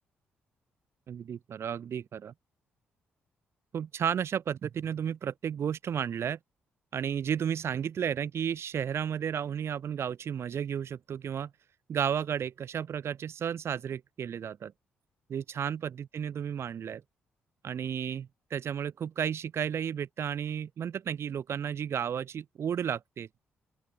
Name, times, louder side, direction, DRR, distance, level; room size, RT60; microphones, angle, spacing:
voice 1, 1.1-2.3 3.7-6.4 6.9-11.5 11.9-14.7 15.3-17.0 17.6-23.3, right 8 dB, 50° right, 3.2 m, -33 dB
open air
figure-of-eight pair, 40°, 6 cm